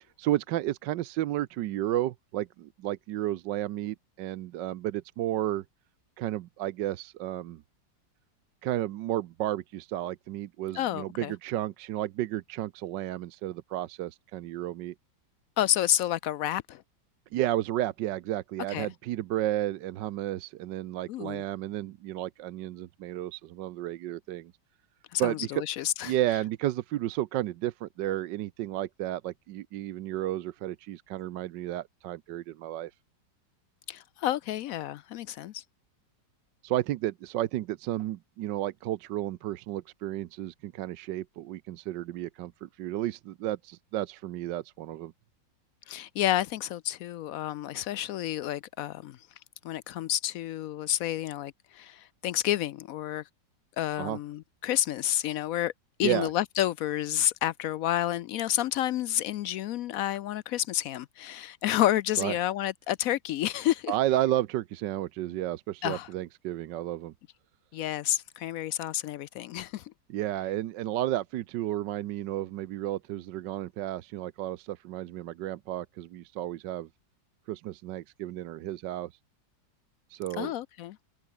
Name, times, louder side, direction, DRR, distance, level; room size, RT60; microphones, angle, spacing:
voice 1, 0.2-5.6 6.2-7.6 8.6-14.9 17.3-24.5 25.2-25.6 26.0-32.9 36.6-45.1 54.0-54.2 56.0-56.3 62.2-62.4 63.9-67.1 70.1-76.9 77.5-79.1 80.1-80.5, right 14 dB, 75° right, 1.3 m, -32 dB
voice 2, 10.8-11.3 15.6-16.8 18.7-18.9 21.1-21.4 25.1-26.1 33.9-35.6 45.9-49.2 49.6-53.2 53.8-55.7 56.0-63.9 65.8-66.1 67.7-69.9 80.4-81.0, left 12 dB, 80° left, 0.7 m, -30 dB
omnidirectional pair, 2.0 m